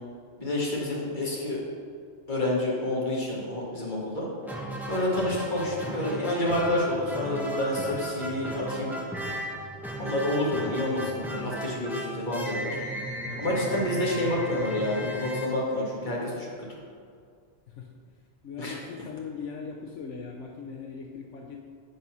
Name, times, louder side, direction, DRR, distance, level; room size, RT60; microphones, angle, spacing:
voice 1, 0.4-1.6 2.3-4.3 4.9-9.0 10.0-12.8 13.4-16.8 18.6-18.8, left 1 dB, 40° left, -4 dB, 1.9 m, -29 dB
sound 1, 4.4-16.3, right 1 dB, ahead, 0.9 m, -35 dB
voice 2, 18.4-21.6, left 5 dB, 80° left, 0 dB, 1.0 m, -39 dB
9.4 x 4.1 x 6.0 m, 2.2 s
omnidirectional pair, 1.2 m